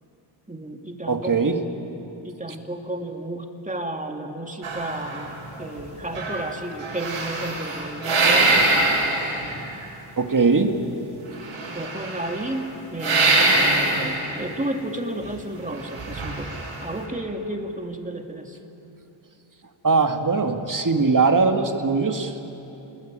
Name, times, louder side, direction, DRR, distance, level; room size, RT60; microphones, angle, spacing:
voice 1, 0.5-1.5 2.2-8.8 11.7-18.6, right 1 dB, 15° right, 3 dB, 2.5 m, -32 dB
voice 2, 1.1-1.6 10.2-10.8 19.8-22.4, right 4 dB, 40° right, 5 dB, 2.0 m, -20 dB
sound 1, 4.6-5.8 6.1-9.8 11.4-12.5 13.0-14.3 15.8-16.9, right 2 dB, 80° right, 6.1 m, -23 dB
27.5 x 20.5 x 8.9 m, 2.9 s
wide cardioid pair, 80°, 49 cm